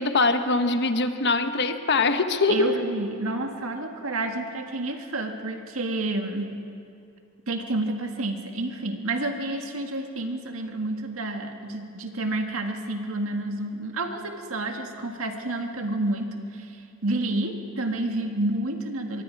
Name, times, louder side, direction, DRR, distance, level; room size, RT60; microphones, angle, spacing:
voice 1, 0.0-2.7, left 3 dB, 55° left, 8 dB, 1.2 m, -23 dB
voice 2, 2.5-6.6 7.5-19.2, right 2 dB, 85° right, 4 dB, 1.9 m, -29 dB
25.0 x 23.0 x 4.8 m, 2.5 s
head